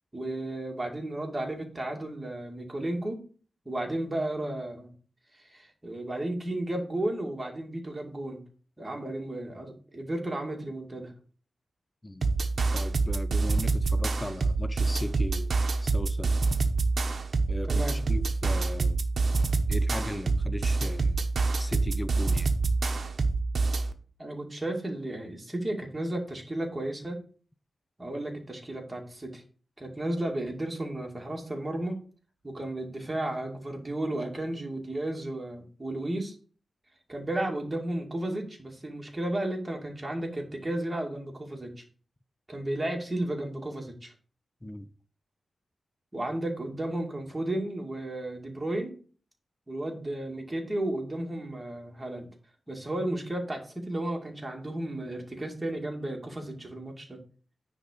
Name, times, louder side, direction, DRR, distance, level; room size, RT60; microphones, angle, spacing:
voice 1, 0.1-3.2 3.7-4.9 5.3-8.4 8.8-11.1 17.7-17.9 24.2-27.2 28.0-29.4 29.8-32.0 32.4-36.4 37.1-41.7 42.5-44.1 46.1-49.0 49.7-52.3 52.7-57.2, right 1 dB, 15° right, 2.2 m, -33 dB
sound 1, 12.2-23.9, right 3 dB, 55° right, 1.0 m, -26 dB
voice 2, 12.7-15.5 15.8-16.4 17.5-19.0 19.7-21.2 21.6-22.5 44.6-44.9, left 1 dB, 15° left, 0.6 m, -37 dB
9.7 x 3.6 x 6.6 m
wide cardioid pair, 125°, 0 cm